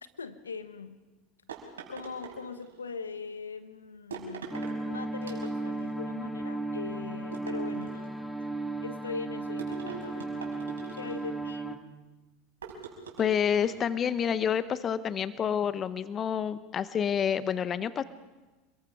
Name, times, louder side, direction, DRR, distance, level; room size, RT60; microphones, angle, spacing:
voice 1, 0.2-1.0 1.9-8.1 8.8-10.3 10.9-11.8, left 5 dB, 85° left, 11 dB, 1.3 m, -41 dB
sound 1, 1.5-2.9 4.1-4.8 5.2-5.9 7.3-8.2 9.6-11.4 12.6-13.9, right 5 dB, 75° right, 5.5 m, -43 dB
sound 2, 4.5-11.8, right 2 dB, ahead, 2.1 m, -35 dB
voice 2, 13.2-18.0, left 8 dB, 35° left, 14 dB, 1.0 m, -28 dB
28.0 x 22.0 x 4.9 m, 1.2 s
figure-of-eight pair, 80°, 0 cm